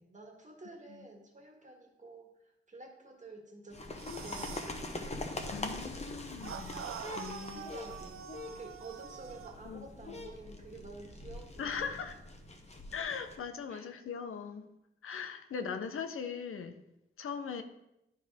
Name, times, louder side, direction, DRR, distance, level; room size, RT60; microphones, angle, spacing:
voice 1, 0.0-3.8 4.2-5.1 7.4-12.0 12.7-12.8 13.7-13.9, right 2 dB, 35° right, 2 dB, 1.6 m, -50 dB
sound 1, 3.7-13.4, left 2 dB, 30° left, 0.9 m, -43 dB
sound 2, 3.9-4.8 6.4-9.6, right 8 dB, 90° right, 0.4 m, -45 dB
sound 3, 4.2-8.5, left 4 dB, 60° left, 1.5 m, -64 dB
voice 2, 5.5-6.8 7.1-7.7 9.6-9.8 11.6-12.2 12.9-14.7 15.0-16.8 17.2-17.6, left 6 dB, 85° left, 8 dB, 0.6 m, -39 dB
10.0 x 4.6 x 3.5 m, 0.86 s
wide cardioid pair, 85°, 21 cm